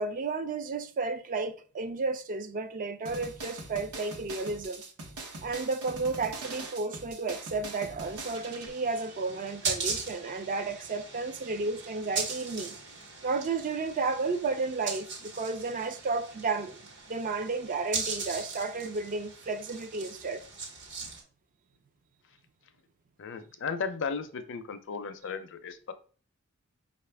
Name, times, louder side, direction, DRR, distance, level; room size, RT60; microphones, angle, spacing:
voice 1, 0.0-4.8 5.4-12.7 13.2-16.8 17.1-20.4, right 3 dB, 35° right, 0.4 m, -32 dB
sound 1, 3.1-8.7, right 2 dB, 75° right, 0.9 m, -42 dB
sound 2, 8.0-21.2, right 4 dB, 55° right, 1.1 m, -39 dB
voice 2, 23.2-25.9, left 5 dB, 55° left, 0.5 m, -35 dB
5.4 x 2.4 x 3.3 m
head